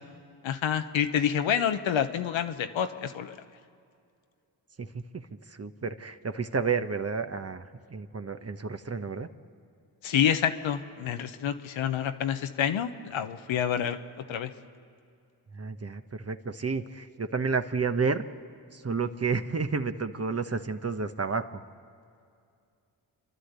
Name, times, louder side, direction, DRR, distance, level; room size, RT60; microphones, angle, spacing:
voice 1, 0.4-3.4 10.0-14.0 14.3-14.5, left 9 dB, 75° left, 8 dB, 1.1 m, -28 dB
voice 2, 4.8-9.3 15.5-18.2 18.7-21.6, right 5 dB, 30° right, 9 dB, 1.1 m, -31 dB
30.0 x 11.5 x 8.2 m, 2.4 s
supercardioid pair, 50°, 47 cm